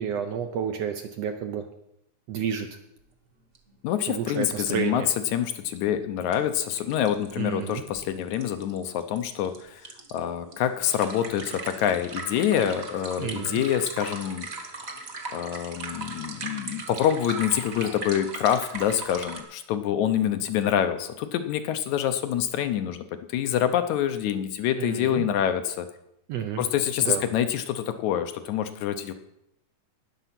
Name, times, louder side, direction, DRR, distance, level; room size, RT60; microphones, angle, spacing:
voice 1, 0.0-1.6 2.3-2.7 4.1-5.1 7.4-7.8 13.2-13.6 24.8-25.3 26.3-26.6 27.0-27.2, right 8 dB, 70° right, 6 dB, 1.6 m, -30 dB
sound 1, 3.6-3.7 3.9-4.0 5.8-5.9 6.3-6.4 6.7-19.4, right 3 dB, 40° right, 1.3 m, -38 dB
voice 2, 3.8-5.0 5.3-9.8 10.1-14.5 15.3-23.0 23.3-25.9 26.6-29.1, left 10 dB, 75° left, 8 dB, 2.0 m, -26 dB
19.0 x 6.7 x 5.9 m, 0.79 s
omnidirectional pair, 3.6 m